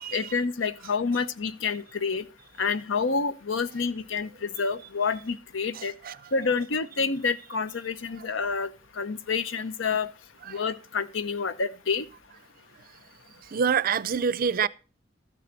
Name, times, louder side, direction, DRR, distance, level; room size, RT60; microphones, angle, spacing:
voice 1, 0.1-2.2 2.6-5.9 6.3-8.7 9.0-10.1 10.5-12.0, left 5 dB, 85° left, 0.7 m, -28 dB
voice 2, 5.8-6.2 10.5-10.6 13.5-14.7, right 6 dB, 50° right, 0.4 m, -26 dB
13.0 x 6.9 x 5.2 m
head